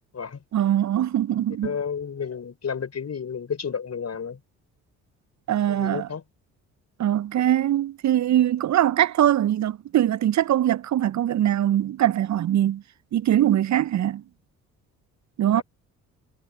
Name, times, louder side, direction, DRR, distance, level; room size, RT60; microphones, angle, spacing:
voice 1, 0.5-1.7 5.5-6.1 7.0-12.8 13.1-14.2 15.4-15.6, right 11 dB, 45° right, 0.8 m, -22 dB
voice 2, 1.6-4.4 5.7-6.2 15.5-15.6, left 6 dB, 40° left, 5.8 m, -31 dB
figure-of-eight pair, 50°, 41 cm